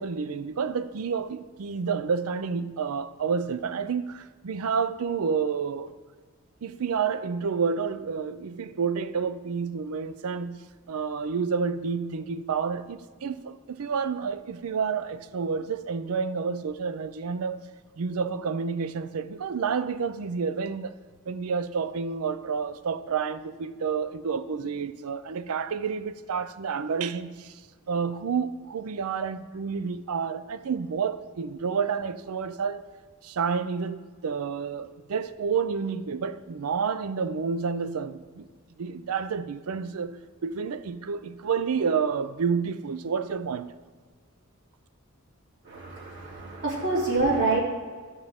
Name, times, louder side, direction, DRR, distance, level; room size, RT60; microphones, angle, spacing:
voice 1, 0.0-5.9 6.6-10.6 10.9-17.6 18.0-20.9 21.3-27.6 27.9-32.8 33.2-38.5 38.8-40.2 40.4-43.7, right 6 dB, 75° right, 0.5 m, -29 dB
voice 2, 45.6-47.6, right 3 dB, 55° right, 2.7 m, -26 dB
14.0 x 5.3 x 3.5 m
head